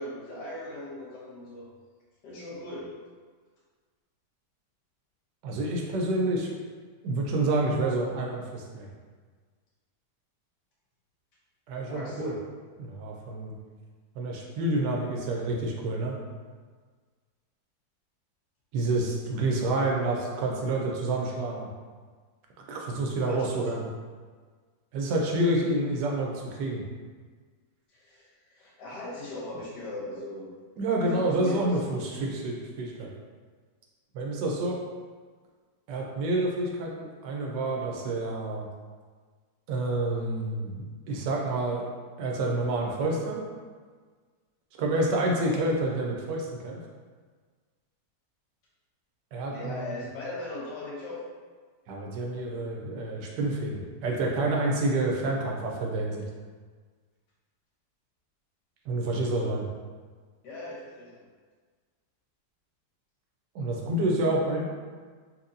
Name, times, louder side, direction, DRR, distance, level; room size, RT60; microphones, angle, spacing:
voice 1, 0.0-1.6 2.2-2.9 11.9-12.4 23.1-23.8 27.9-30.5 31.0-31.8 45.5-45.7 49.5-51.2 60.4-61.2, left 2 dB, 75° left, -5 dB, 1.5 m, -39 dB
voice 2, 5.4-6.5 7.0-8.9 11.7-12.3 12.8-13.5 14.2-16.2 18.7-21.7 22.7-23.8 24.9-26.8 30.8-33.1 34.1-34.8 35.9-38.7 39.7-41.9 42.2-43.4 44.8-46.8 49.3-50.0 51.9-56.2 58.9-59.7 63.5-64.7, right 2 dB, 85° right, -1 dB, 1.2 m, -28 dB
4.2 x 2.7 x 2.6 m, 1.5 s
omnidirectional pair, 1.9 m